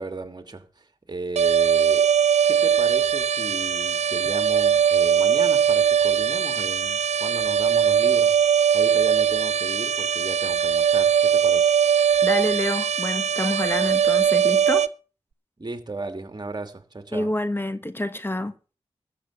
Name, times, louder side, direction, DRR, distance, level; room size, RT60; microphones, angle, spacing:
voice 1, 0.0-2.1 2.4-11.7 15.6-17.3, right 2 dB, 40° right, 2.6 m, -35 dB
sound 1, 1.4-14.9, right 8 dB, 85° right, 0.6 m, -20 dB
voice 2, 12.2-14.9 17.1-18.5, left 1 dB, 20° left, 1.2 m, -27 dB
13.5 x 6.3 x 8.3 m
cardioid pair, 45°, 11 cm